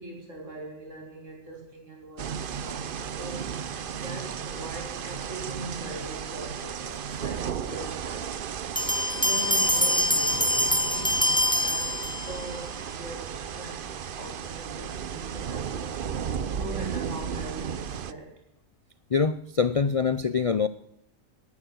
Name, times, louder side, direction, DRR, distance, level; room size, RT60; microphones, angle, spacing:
voice 1, 0.0-8.3 9.1-13.8 14.1-16.1 16.6-18.4, right 2 dB, 70° right, 0 dB, 5.5 m, -41 dB
sound 1, 2.2-18.1, right 7 dB, 50° right, 0.8 m, -34 dB
Bell, 8.8-12.5, left 1 dB, 5° left, 1.1 m, -25 dB
voice 2, 19.1-20.7, left 5 dB, 45° left, 15 dB, 0.4 m, -24 dB
18.5 x 11.0 x 6.2 m, 0.76 s
omnidirectional pair, 1.3 m